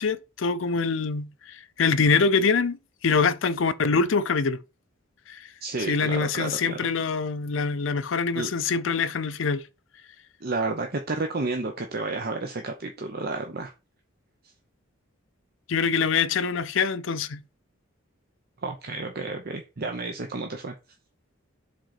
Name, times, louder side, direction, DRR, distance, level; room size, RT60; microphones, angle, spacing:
voice 1, 0.0-2.8 3.0-4.6 5.3-5.4 5.8-9.6 15.7-17.4, left 5 dB, 60° left, 0.5 m, -24 dB
voice 2, 5.6-6.9 8.3-8.5 10.4-13.7 18.6-20.7, right 3 dB, 45° right, 0.7 m, -31 dB
5.1 x 3.9 x 5.8 m
head